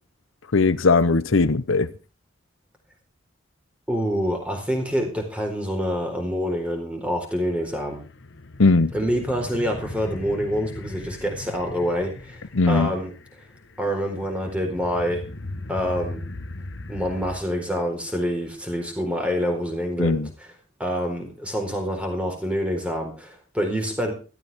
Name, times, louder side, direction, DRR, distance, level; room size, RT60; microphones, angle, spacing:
voice 1, 0.5-1.9 8.6-8.9 12.5-12.9 20.0-20.3, left 3 dB, 80° left, 0.8 m, -19 dB
voice 2, 3.9-8.0 8.9-12.4 12.7-13.1 13.8-15.2 15.7-16.2 16.9-20.5 20.8-24.1, equal, 5° right, 4.3 m, -26 dB
sound 1, 7.3-17.4, left 2 dB, 65° left, 1.4 m, -39 dB
17.0 x 14.0 x 3.6 m
head